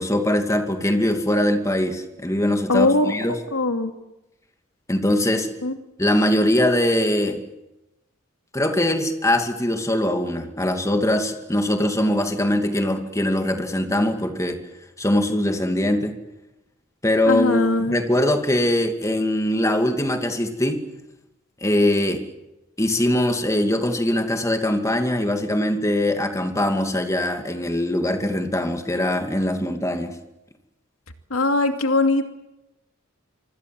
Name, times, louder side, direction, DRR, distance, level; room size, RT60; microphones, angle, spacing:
voice 1, 0.0-3.4 4.9-5.5 6.0-7.4 8.5-14.6 15.0-16.1 17.0-20.8 21.6-22.2 22.8-30.1, left 1 dB, 15° left, 5 dB, 2.5 m, -22 dB
voice 2, 2.7-3.1 3.5-3.9 5.6-5.7 17.3-18.0 31.3-32.2, left 2 dB, 85° left, 6 dB, 2.6 m, -20 dB
26.0 x 25.0 x 7.8 m, 0.94 s
head